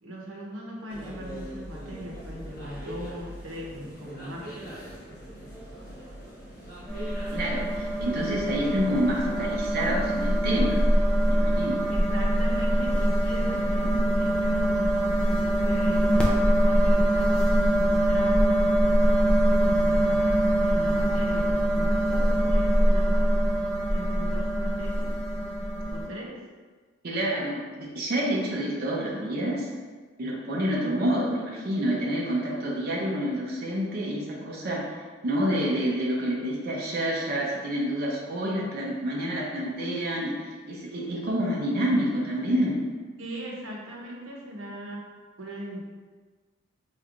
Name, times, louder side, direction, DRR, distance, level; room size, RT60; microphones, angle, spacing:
voice 1, 0.0-4.7 11.9-14.8 15.6-16.2 16.6-18.6 19.6-23.3 23.9-25.1 25.9-26.4 43.2-45.1 45.4-45.8, equal, 80° right, -2 dB, 0.9 m, -39 dB
sound 1, 0.9-17.1, equal, 50° left, 1.2 m, -43 dB
sound 2, 6.9-26.1, right 1 dB, 5° left, 0.5 m, -23 dB
voice 2, 7.3-10.8 11.3-11.8 27.0-29.7 30.2-34.8 35.2-42.8, equal, 50° right, -3 dB, 0.6 m, -28 dB
4.2 x 3.3 x 2.4 m, 1.4 s
head